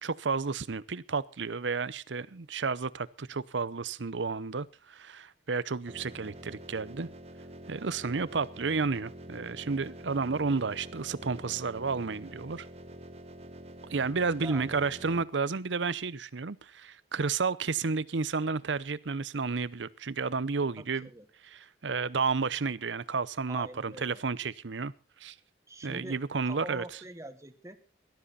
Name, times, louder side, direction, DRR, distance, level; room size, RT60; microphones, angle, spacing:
voice 1, 0.0-7.1 7.7-12.7 13.9-21.1 21.5-24.9 25.2-25.4 25.8-26.8, right 4 dB, 80° right, 18 dB, 0.7 m, -31 dB
sound 1, 5.9-15.2, right 1 dB, 35° right, 1.2 m, -47 dB
voice 2, 20.8-21.3 23.5-24.2 25.7-26.2 26.4-27.8, right 1 dB, 15° right, 9 dB, 1.5 m, -44 dB
18.0 x 12.5 x 4.2 m, 0.32 s
head